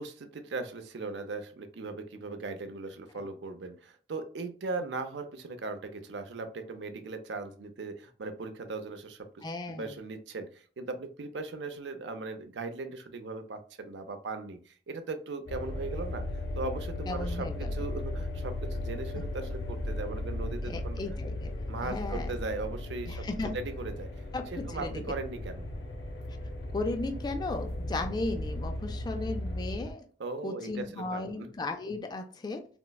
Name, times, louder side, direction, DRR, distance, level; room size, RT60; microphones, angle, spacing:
voice 1, 0.0-9.4 9.8-21.0 21.7-23.2 23.5-24.1 24.5-25.7 30.2-31.5, right 3 dB, 75° right, 8 dB, 0.5 m, -38 dB
voice 2, 9.4-10.0 17.1-17.7 19.2-19.3 20.6-21.5 21.8-22.3 23.1-23.6 24.3-25.0 26.7-30.0 30.4-32.7, left 2 dB, 25° left, 5 dB, 0.3 m, -35 dB
sound 1, 15.5-29.9, left 1 dB, 85° left, 0.7 m, -36 dB
4.3 x 2.0 x 2.2 m, 0.42 s
head